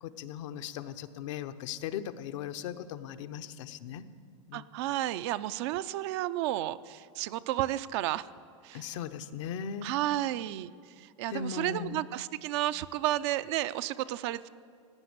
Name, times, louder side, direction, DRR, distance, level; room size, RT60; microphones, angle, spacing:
voice 1, 0.0-4.0 4.5-4.7 8.7-9.9 11.3-12.0, left 8 dB, 70° left, 10 dB, 0.8 m, -38 dB
voice 2, 4.5-8.3 8.6-8.8 9.8-14.5, right 14 dB, 60° right, 14 dB, 0.5 m, -32 dB
16.0 x 9.4 x 7.9 m, 2.2 s
supercardioid pair, 130°, 16 cm